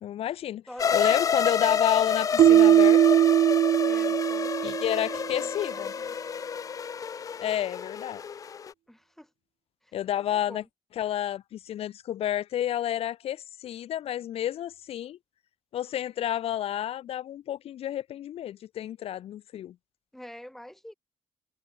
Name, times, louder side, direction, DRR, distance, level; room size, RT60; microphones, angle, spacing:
voice 1, 0.0-0.6 0.9-3.2 4.6-5.9 7.4-8.2 9.9-10.6 11.0-15.2 15.7-19.7, left 11 dB, 70° left, 0.9 m, -30 dB
voice 2, 0.7-2.1 3.8-5.0 5.3-6.2 8.9-9.3 9.8-10.7 20.1-20.9, equal, 5° left, 2.4 m, -47 dB
sound 1, 0.8-8.7, left 7 dB, 35° left, 0.4 m, -29 dB
Keyboard (musical), 2.4-5.2, right 12 dB, 65° right, 0.4 m, -20 dB
cardioid pair, 130°, 10 cm